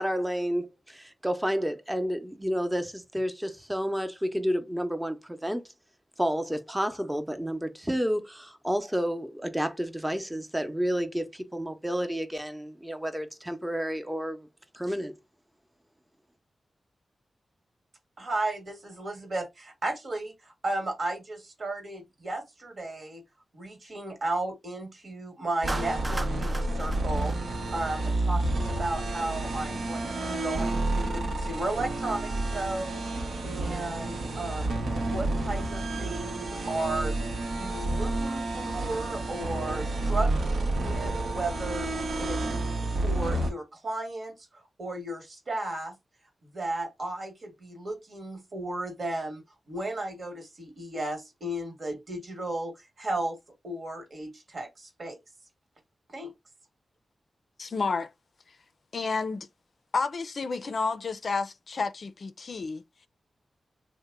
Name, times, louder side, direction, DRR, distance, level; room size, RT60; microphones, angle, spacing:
voice 1, 0.0-5.6 6.2-14.5 14.7-15.1, equal, 10° right, 0.7 m, -30 dB
voice 2, 18.2-23.2 23.5-33.0 33.4-34.7 35.0-37.2 37.5-41.9 42.2-44.3 44.8-46.0 46.5-49.4 49.7-53.4 53.6-55.2 56.1-56.3, right 2 dB, 60° right, 1.2 m, -34 dB
sound 1, 25.6-43.5, right 2 dB, 85° right, 0.8 m, -30 dB
Clapping, 25.7-28.1, right 2 dB, 30° right, 0.3 m, -37 dB
voice 3, 57.6-58.1 58.9-59.5 59.9-62.8, left 4 dB, 65° left, 0.4 m, -30 dB
2.9 x 2.1 x 3.5 m
cardioid pair, 45°, 0 cm